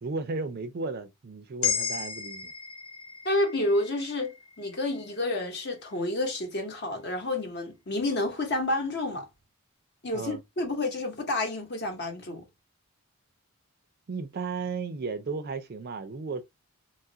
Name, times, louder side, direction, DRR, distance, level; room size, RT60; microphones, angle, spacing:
voice 1, 0.0-2.5 10.1-10.4 14.1-16.4, right 4 dB, 45° right, 0.4 m, -34 dB
sound 1, 1.6-5.9, left 8 dB, 85° left, 0.7 m, -35 dB
voice 2, 3.2-9.3 10.0-12.5, left 2 dB, 50° left, 0.9 m, -29 dB
3.0 x 2.3 x 2.7 m
head